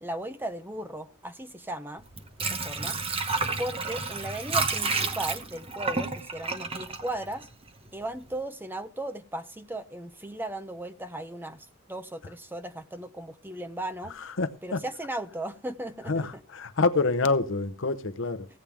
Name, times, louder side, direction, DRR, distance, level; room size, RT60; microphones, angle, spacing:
voice 1, 0.0-2.1 2.4-3.0 3.6-7.5 7.9-14.1 14.6-16.4, right 1 dB, 10° right, 0.6 m, -36 dB
Water / Sink (filling or washing), 2.0-7.9 8.2-8.3, right 3 dB, 25° right, 1.0 m, -30 dB
voice 2, 14.4-14.8 16.1-18.5, left 3 dB, 60° left, 0.8 m, -27 dB
16.0 x 8.6 x 3.4 m
head